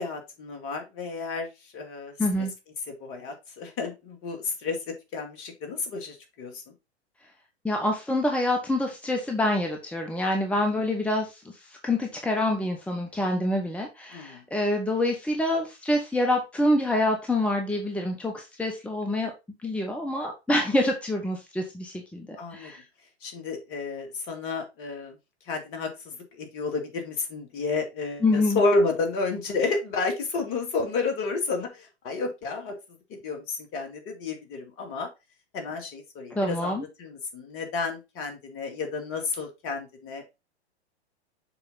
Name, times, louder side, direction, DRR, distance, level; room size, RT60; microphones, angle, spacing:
voice 1, 0.0-2.5 3.0-6.7 10.7-10.8 14.1-14.4 22.4-22.7 23.2-25.2 25.5-32.7 33.1-35.1 35.5-40.3, left 3 dB, 40° left, 4 dB, 2.5 m, -31 dB
voice 2, 2.2-2.5 7.6-11.3 11.8-19.3 19.6-22.3 22.5-22.8 28.2-28.6 36.3-36.8, left 1 dB, 5° left, 2 dB, 1.1 m, -26 dB
7.1 x 4.7 x 3.9 m, 0.25 s
hypercardioid pair, 105°, 34 cm